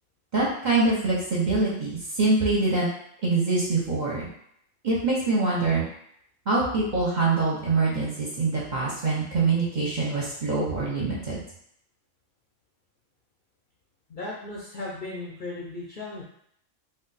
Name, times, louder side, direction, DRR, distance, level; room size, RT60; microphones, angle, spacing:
voice 1, 0.3-2.9 3.2-4.3 4.8-5.8 6.5-11.4, right 3 dB, 45° right, -5 dB, 0.7 m, -24 dB
voice 2, 14.1-16.2, left 2 dB, 55° left, -4 dB, 0.6 m, -36 dB
2.5 x 2.2 x 3.9 m, 0.71 s
omnidirectional pair, 1.3 m